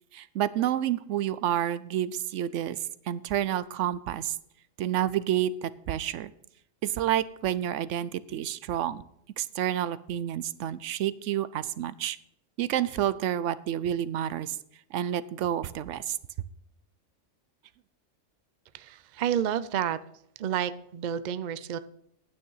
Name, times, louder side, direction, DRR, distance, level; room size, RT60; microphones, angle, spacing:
voice 1, 0.1-2.8 3.1-4.4 4.8-6.3 6.8-9.0 9.4-12.2 12.6-14.6 14.9-16.2, right 11 dB, 75° right, 17 dB, 0.9 m, -29 dB
voice 2, 18.7-20.0 20.4-21.8, right 9 dB, 55° right, 15 dB, 0.5 m, -30 dB
9.5 x 9.2 x 5.5 m, 0.74 s
omnidirectional pair, 1.3 m